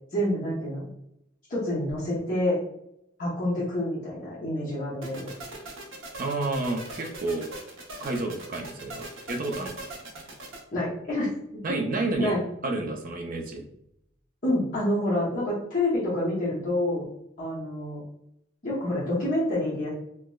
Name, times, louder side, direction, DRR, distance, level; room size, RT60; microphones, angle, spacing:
voice 1, 0.1-0.9 1.5-2.6 3.2-5.2 10.7-11.4 11.7-11.8 12.1-12.4 14.4-17.0 17.4-18.0 18.6-20.0, left 1 dB, 40° left, -8 dB, 0.9 m, -27 dB
sound 1, 5.0-10.6, right 2 dB, 80° right, 0.7 m, -41 dB
voice 2, 6.2-7.5 8.0-9.8 11.6-12.4 12.6-13.6, right 2 dB, 45° right, 3 dB, 0.5 m, -30 dB
4.6 x 2.0 x 2.3 m, 0.78 s
head